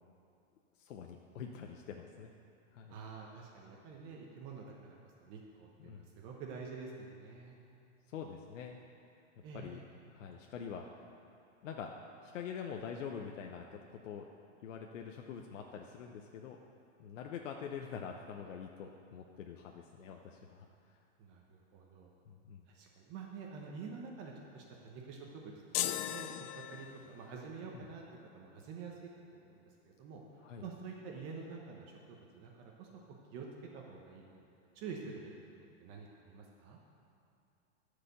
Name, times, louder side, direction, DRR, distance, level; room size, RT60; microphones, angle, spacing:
voice 1, 0.8-2.3 2.7-3.0 5.8-6.1 8.1-8.8 9.5-9.8 10.1-10.9 11.6-11.9 12.2-13.8 14.0-14.3 14.6-16.6 17.0-20.7 22.3-22.6 27.7-27.8 30.4-30.7, left 7 dB, 80° left, 2 dB, 0.9 m, -45 dB
voice 2, 2.9-7.6 9.4-9.8 21.2-22.1 22.7-25.5 25.8-28.0 28.3-29.6 29.8-30.2 30.6-32.9 33.3-33.5 33.7-34.4 34.7-35.3 35.8-36.8, right 5 dB, 35° right, 0 dB, 1.1 m, -48 dB
sound 1, 25.7-27.3, left 12 dB, 50° left, 0.5 m, -37 dB
14.0 x 5.1 x 6.9 m, 2.6 s
supercardioid pair, 155°, 37 cm